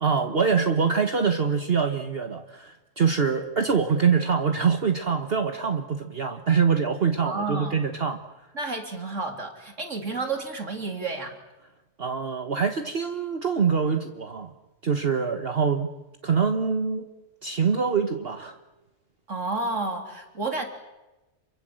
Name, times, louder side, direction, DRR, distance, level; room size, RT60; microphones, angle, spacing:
voice 1, 0.0-8.2 12.0-14.5 14.8-15.9 16.2-17.1 17.4-18.5, right 6 dB, 45° right, 6 dB, 1.4 m, -24 dB
voice 2, 7.2-7.9 8.5-11.4 19.3-20.7, right 3 dB, 60° right, 4 dB, 3.7 m, -31 dB
28.5 x 23.5 x 7.7 m, 1.1 s
omnidirectional pair, 1.4 m